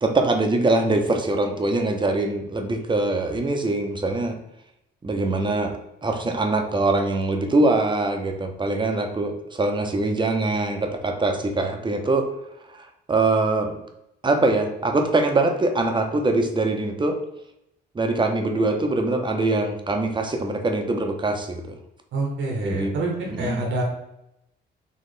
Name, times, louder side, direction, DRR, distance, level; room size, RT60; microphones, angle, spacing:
voice 1, 0.0-4.4 5.0-5.7 6.0-12.3 12.7-13.8 14.2-17.2 17.9-21.7 22.6-22.9 23.3-23.7, right 2 dB, 25° right, 4 dB, 0.7 m, -23 dB
voice 2, 22.1-23.8, right 2 dB, 75° right, -1 dB, 1.1 m, -27 dB
4.3 x 3.1 x 3.3 m, 0.83 s
cardioid pair, 90°, 20 cm